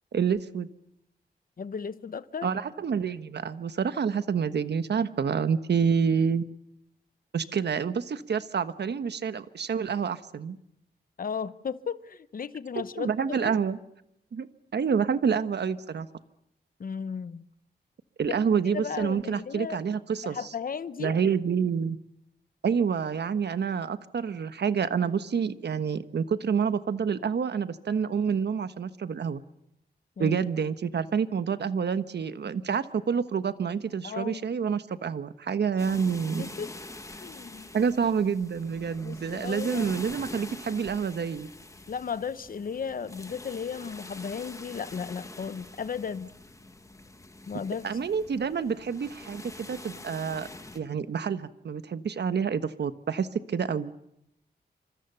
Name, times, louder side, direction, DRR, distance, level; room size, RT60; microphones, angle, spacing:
voice 1, 0.1-0.7 2.4-6.6 7.3-10.6 12.7-13.8 14.3-14.5 14.7-16.1 18.2-20.5 21.0-22.0 22.6-29.4 30.2-36.5 37.7-41.5 47.8-50.5 50.7-53.9, right 6 dB, 80° right, 1.3 m, -28 dB
voice 2, 1.6-2.5 11.2-13.6 16.8-17.5 18.3-18.4 18.7-19.8 20.2-21.2 30.2-30.4 34.0-34.4 36.4-36.7 37.2-37.7 39.0-40.0 41.9-46.3 47.5-47.9, left 6 dB, 55° left, 0.9 m, -35 dB
sound 1, 35.8-50.8, left 2 dB, 20° left, 1.5 m, -45 dB
28.0 x 26.0 x 6.9 m
wide cardioid pair, 150°, 17 cm